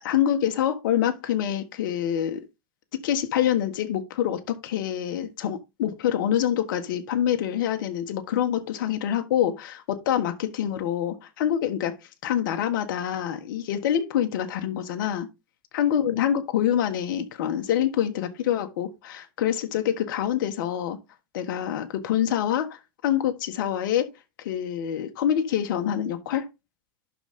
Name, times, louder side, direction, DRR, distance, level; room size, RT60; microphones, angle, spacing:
voice 1, 0.0-2.4 3.0-11.9 12.2-15.3 15.7-21.0 21.3-24.1 24.4-26.5, left 10 dB, 70° left, 1.4 m, -26 dB
11.5 x 3.8 x 3.6 m
supercardioid pair, 125°, 11 cm